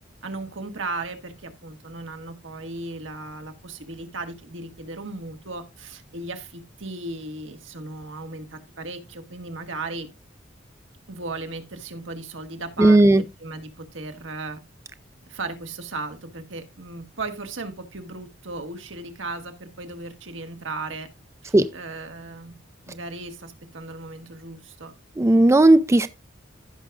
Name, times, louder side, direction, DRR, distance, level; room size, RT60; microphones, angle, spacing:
voice 1, 0.2-10.1 11.1-14.6 15.3-21.1 21.4-22.6 22.9-24.9, right 3 dB, 90° right, 1.5 m, -36 dB
voice 2, 12.8-13.2 21.5-21.7 25.2-26.1, right 2 dB, 15° right, 0.4 m, -15 dB
15.5 x 5.9 x 2.4 m
head